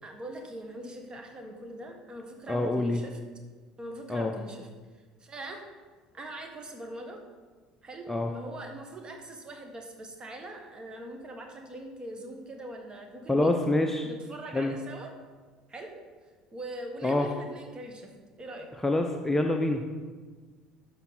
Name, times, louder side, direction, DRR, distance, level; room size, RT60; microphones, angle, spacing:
voice 1, 0.0-3.2 3.8-4.7 5.2-5.6 6.1-7.2 7.8-13.5 14.0-15.1 15.7-16.0 16.5-18.1 18.4-18.7, right 1 dB, 25° right, 3 dB, 1.5 m, -42 dB
voice 2, 2.5-3.0 4.1-4.3 8.1-8.3 13.3-14.1 14.5-14.7 17.0-17.3 18.8-19.9, left 2 dB, 10° left, 4 dB, 0.6 m, -26 dB
12.5 x 4.8 x 4.2 m, 1.4 s
figure-of-eight pair, 60°, 3 cm